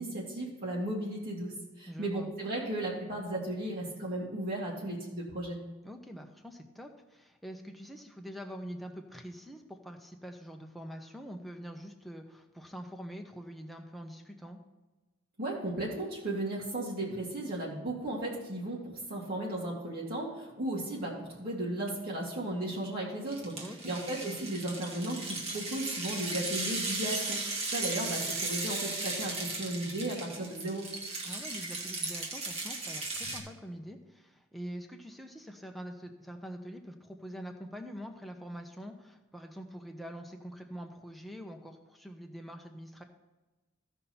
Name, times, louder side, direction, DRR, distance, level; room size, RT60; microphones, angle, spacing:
voice 1, 0.0-5.6 15.4-23.6 23.8-30.9, right 1 dB, 50° right, -5 dB, 2.0 m, -35 dB
voice 2, 1.9-2.3 5.8-14.6 23.6-24.0 31.2-43.0, equal, ahead, 3 dB, 0.9 m, -45 dB
sound 1, 23.3-33.4, right 3 dB, 30° right, 1.5 m, -36 dB
15.0 x 5.5 x 4.3 m, 1.1 s
head